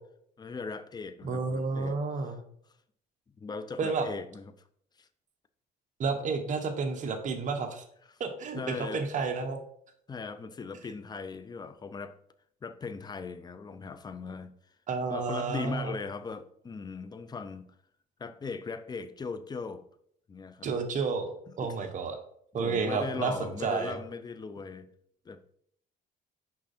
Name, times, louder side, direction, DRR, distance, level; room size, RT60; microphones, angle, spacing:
voice 1, 0.4-2.4 3.4-4.5 5.0-5.1 8.5-9.1 10.1-12.2 12.6-14.5 15.1-17.7 18.2-19.8 20.3-20.7 21.6-21.7 22.6-24.9 25.3-25.5, left 4 dB, 25° left, 0.6 m, -39 dB
voice 2, 1.2-2.4 3.8-4.1 6.0-7.8 8.2-9.6 14.9-16.0 20.6-22.2 22.5-24.0, right 4 dB, 50° right, 1.3 m, -31 dB
6.2 x 5.3 x 4.3 m
cardioid pair, 110°, 17 cm